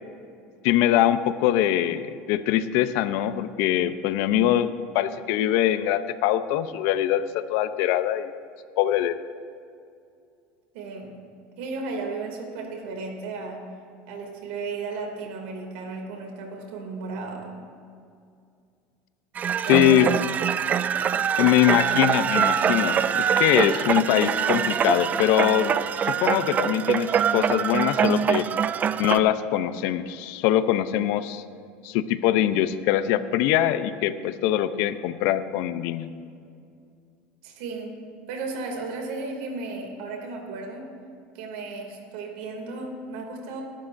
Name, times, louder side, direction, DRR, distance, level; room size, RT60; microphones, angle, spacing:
voice 1, 0.6-8.3 8.8-9.2 19.7-20.1 21.4-28.5 29.0-31.4 31.8-36.1, left 12 dB, 70° left, 12 dB, 0.7 m, -23 dB
voice 2, 10.7-11.1 11.6-13.6 14.1-17.6 19.6-20.2 37.4-38.0 38.3-40.9 41.3-43.6, right 3 dB, 80° right, 1 dB, 2.7 m, -34 dB
sound 1, 19.4-29.2, right 8 dB, 35° right, 0.4 m, -24 dB
21.5 x 11.5 x 2.7 m, 2.3 s
supercardioid pair, 110°, 5 cm